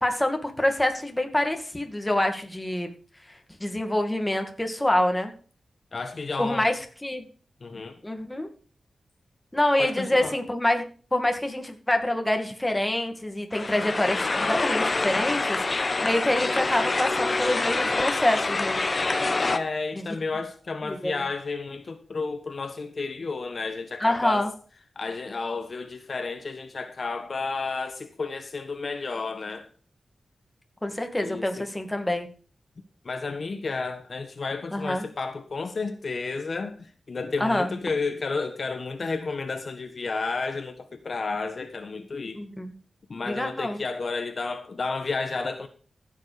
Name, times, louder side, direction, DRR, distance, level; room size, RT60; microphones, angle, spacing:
voice 1, 0.0-2.9 3.6-5.3 6.4-7.3 8.0-8.5 9.5-10.8 11.1-18.8 19.9-20.0 20.9-21.1 24.0-24.5 30.8-32.3 34.7-35.1 37.4-37.7 42.3-42.7 43.3-43.8, left 1 dB, 15° left, 2.3 m, -26 dB
voice 2, 5.9-6.7 7.6-8.0 9.8-10.4 19.4-24.5 24.9-29.7 31.1-31.7 33.0-42.4 43.1-45.7, left 4 dB, 55° left, 1.4 m, -32 dB
sound 1, 13.5-19.6, left 3 dB, 35° left, 1.1 m, -26 dB
15.0 x 7.5 x 5.1 m
wide cardioid pair, 95°, 0 cm